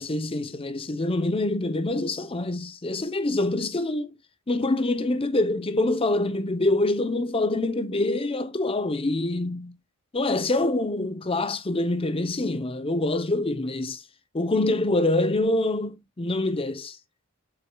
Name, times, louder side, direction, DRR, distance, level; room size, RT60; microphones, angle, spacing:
voice 1, 0.0-4.2 4.5-9.8 10.1-14.0 14.3-17.0, left 2 dB, 25° left, 0.7 m, -25 dB
7.7 x 5.9 x 2.2 m
head